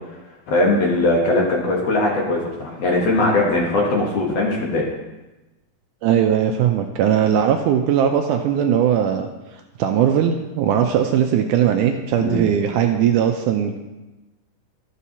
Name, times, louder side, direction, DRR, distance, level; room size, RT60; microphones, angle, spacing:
voice 1, 0.5-4.8 12.2-12.4, left 2 dB, 60° left, -2 dB, 1.9 m, -20 dB
voice 2, 6.0-9.3 9.8-13.8, right 9 dB, 80° right, 4 dB, 1.9 m, -19 dB
13.0 x 7.3 x 2.8 m, 1.1 s
omnidirectional pair, 3.9 m